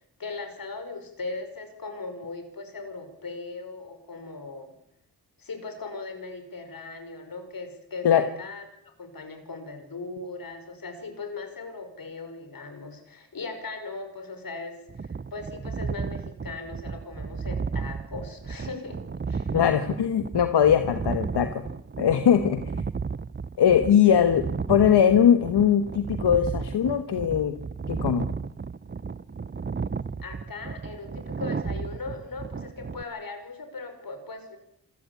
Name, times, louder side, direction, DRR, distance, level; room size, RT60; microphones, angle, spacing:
voice 1, 0.2-4.7 5.4-8.7 9.0-19.0 19.3-19.5 24.1-24.3 30.2-34.6, left 3 dB, 60° left, 7 dB, 6.0 m, -38 dB
sound 1, 14.9-33.0, right 5 dB, 25° right, 0.8 m, -33 dB
voice 2, 19.5-21.6 22.0-22.6 23.6-24.4 24.7-27.5 27.9-28.3, left 9 dB, 80° left, 9 dB, 1.4 m, -20 dB
27.0 x 14.5 x 8.4 m, 0.75 s
cardioid pair, 55°, 40 cm